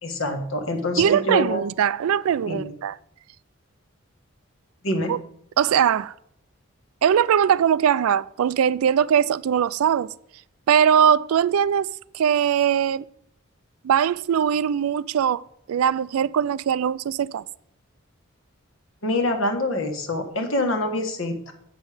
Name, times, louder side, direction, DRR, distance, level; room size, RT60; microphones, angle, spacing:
voice 1, 0.0-1.6 2.5-2.7 4.8-5.1 19.0-21.5, left 1 dB, 70° left, 1.4 m, -25 dB
voice 2, 1.0-3.0 5.1-5.2 5.6-6.1 7.0-10.1 10.7-13.1 13.8-15.4 15.7-17.4, right 8 dB, 90° right, 0.3 m, -21 dB
8.2 x 6.4 x 4.9 m
head